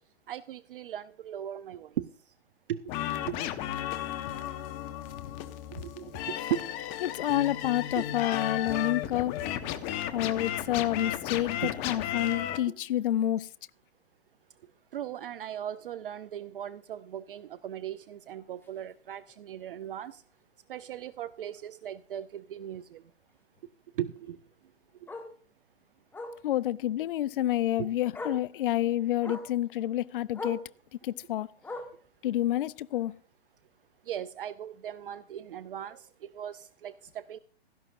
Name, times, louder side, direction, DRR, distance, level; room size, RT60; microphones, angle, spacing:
voice 1, 0.3-2.0 2.7-2.8 3.2-3.4 5.8-6.6 8.0-8.1 11.6-11.7 12.7-12.8 14.9-20.2 20.7-23.0 24.0-24.4 27.8-27.9 29.3-29.4 34.1-37.4, right 10 dB, 55° right, 0.6 m, -38 dB
sound 1, 2.9-12.6, left 11 dB, 25° left, 1.0 m, -34 dB
voice 2, 7.0-9.5 10.1-13.5 26.4-30.6 30.9-31.5 32.2-33.1, left 13 dB, 55° left, 0.5 m, -29 dB
Bark, 18.6-18.8 19.2-19.3 19.7-19.8 20.0-20.1 21.6-21.7 24.2-24.3 25.1-25.3 26.1-26.4 27.6-27.7 28.1-28.5 29.2-29.5 30.3-30.7 31.6-32.1 33.0-33.1, left 2 dB, 5° left, 1.5 m, -39 dB
16.5 x 13.0 x 2.5 m
hypercardioid pair, 125°, 33 cm